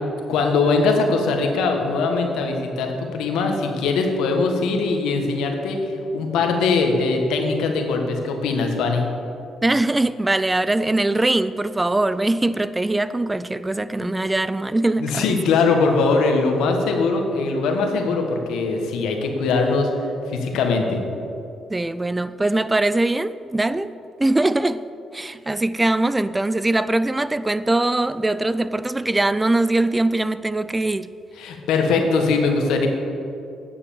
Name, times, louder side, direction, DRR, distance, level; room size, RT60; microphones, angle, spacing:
voice 1, 0.3-9.0 15.0-19.9 20.3-21.0 31.4-32.9, left 4 dB, 85° left, 1.4 m, -21 dB
voice 2, 9.6-15.4 21.7-23.9 24.2-24.8 25.1-31.1, right 2 dB, 15° right, 0.3 m, -21 dB
9.4 x 7.0 x 7.2 m
cardioid pair, 90°, 0 cm